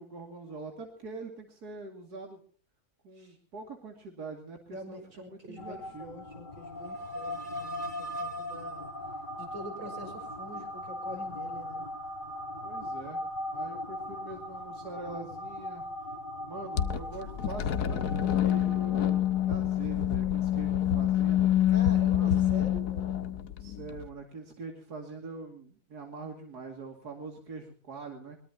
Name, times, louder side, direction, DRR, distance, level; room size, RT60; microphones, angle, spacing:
voice 1, 0.0-2.4 3.0-6.2 12.6-13.2 13.5-15.8 16.4-21.5 22.1-22.5 23.6-28.4, right 3 dB, 85° right, 3 dB, 3.0 m, -43 dB
voice 2, 4.7-8.8 9.4-11.8 21.7-23.3, left 1 dB, 55° right, 4 dB, 6.1 m, -45 dB
sound 1, 5.6-19.5, left 1 dB, 35° left, 1.4 m, -39 dB
sound 2, 16.8-24.1, left 11 dB, 90° left, 1.6 m, -27 dB
22.5 x 22.0 x 2.9 m, 0.41 s
omnidirectional pair, 1.6 m